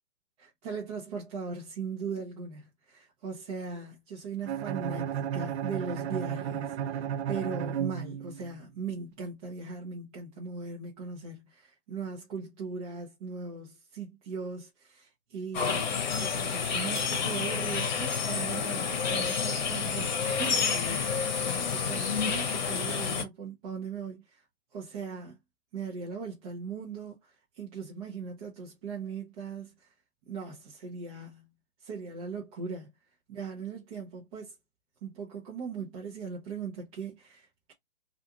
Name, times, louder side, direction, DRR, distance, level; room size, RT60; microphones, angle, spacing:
voice 1, 0.4-21.0 21.7-24.4 24.7-25.4 25.7-29.9 30.3-31.5 31.8-32.9 33.3-34.5 35.0-37.7, right 5 dB, 30° right, 0.7 m, -39 dB
Bowed string instrument, 4.5-8.6, right 9 dB, 70° right, 0.5 m, -33 dB
sound 1, 15.5-23.2, left 6 dB, 40° left, 0.9 m, -29 dB
2.5 x 2.4 x 2.7 m
hypercardioid pair, 145°, 34 cm